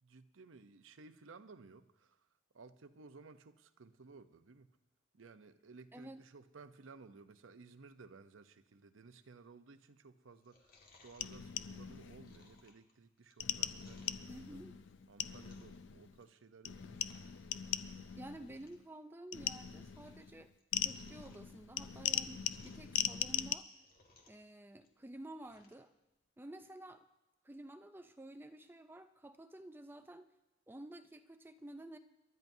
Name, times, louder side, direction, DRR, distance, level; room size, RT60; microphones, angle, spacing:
voice 1, 0.0-2.3 2.5-4.7 5.1-10.7 11.0-14.2 14.5-14.6 15.1-17.0, right 4 dB, 85° right, 10 dB, 0.7 m, -57 dB
voice 2, 5.9-6.2 14.3-14.7 18.2-20.5 20.8-23.7 24.3-25.9 26.4-27.0 27.4-30.3 30.7-32.0, right 1 dB, 10° right, 8 dB, 0.5 m, -51 dB
Chewing mastication, 10.3-14.3 14.8-15.8 16.1-16.4 16.8-17.3 17.6-17.7 18.1-18.2 18.4-18.9 19.3-20.3 20.6-23.0 23.4-24.5 24.8-25.8 26.2-26.3, left 3 dB, 50° left, 1.8 m, -66 dB
sound 1, 11.2-12.6 13.4-16.2 16.6-18.8 19.3-23.5, left 10 dB, 65° left, 0.5 m, -40 dB
28.0 x 12.0 x 2.7 m, 0.98 s
head